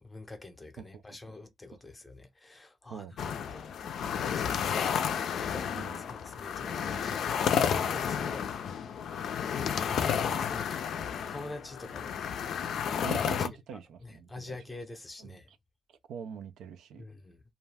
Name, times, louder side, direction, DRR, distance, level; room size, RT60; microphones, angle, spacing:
voice 1, 0.0-3.7 4.3-9.0 9.6-10.9 11.3-12.2 12.7-15.5 17.0-17.4, left 2 dB, 20° left, 0.6 m, -46 dB
voice 2, 0.8-1.2 2.9-3.2 4.7-5.2 5.7-6.0 8.2-8.3 13.0-14.6 15.2-15.6 15.9-17.1, right 7 dB, 75° right, 0.4 m, -44 dB
sound 1, 3.2-13.5, left 8 dB, 70° left, 0.4 m, -31 dB
2.4 x 2.2 x 3.2 m
cardioid pair, 90°, 0 cm